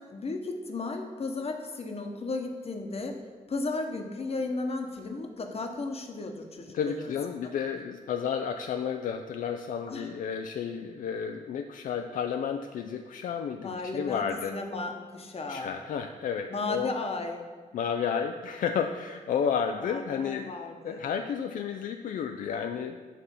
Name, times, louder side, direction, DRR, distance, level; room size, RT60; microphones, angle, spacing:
voice 1, 0.0-3.2 3.5-7.1 7.4-7.5 9.9-10.1 13.6-15.7 16.5-17.5 19.8-21.1, left 3 dB, 45° left, 4 dB, 1.0 m, -35 dB
voice 2, 6.7-14.5 15.5-16.9 17.7-20.5 20.8-23.0, left 7 dB, 70° left, 5 dB, 0.4 m, -31 dB
8.4 x 3.3 x 5.6 m, 1.5 s
cardioid pair, 60°, 14 cm